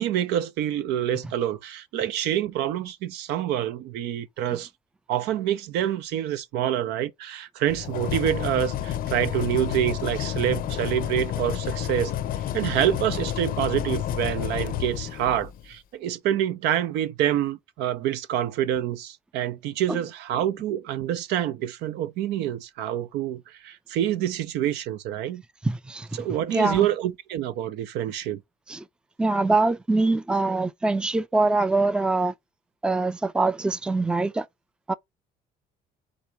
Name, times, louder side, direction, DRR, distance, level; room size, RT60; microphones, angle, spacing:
voice 1, 0.0-4.7 5.1-12.1 12.5-25.4 26.1-28.4, right 11 dB, 85° right, 0.7 m, -27 dB
sound 1, 7.7-15.7, left 11 dB, 60° left, 0.5 m, -30 dB
voice 2, 25.6-26.1 26.5-26.9 28.7-28.8 29.2-32.3 32.8-34.5 34.9-35.0, right 3 dB, 5° right, 0.4 m, -23 dB
4.0 x 2.9 x 4.5 m
cardioid pair, 110°, 17 cm